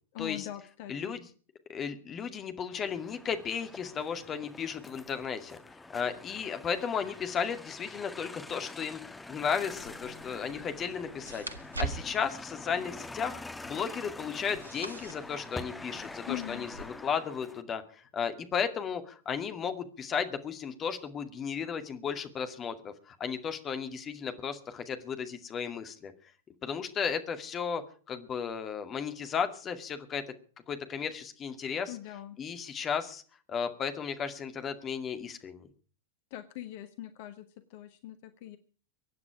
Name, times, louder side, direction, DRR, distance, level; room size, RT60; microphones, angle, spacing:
voice 1, 0.1-1.1 16.3-16.7 31.9-32.4 36.3-38.6, left 13 dB, 50° left, 10 dB, 1.4 m, -42 dB
voice 2, 0.9-1.3 1.7-26.1 26.6-27.8 28.1-30.2 30.7-32.0 32.4-33.2 33.5-35.7, left 7 dB, 25° left, 8 dB, 2.2 m, -34 dB
sound 1, 2.7-17.6, left 2 dB, 10° left, 1.5 m, -46 dB
sound 2, 9.7-16.8, right 4 dB, 80° right, 1.6 m, -43 dB
24.0 x 9.7 x 4.8 m, 0.42 s
figure-of-eight pair, 90°, 0 cm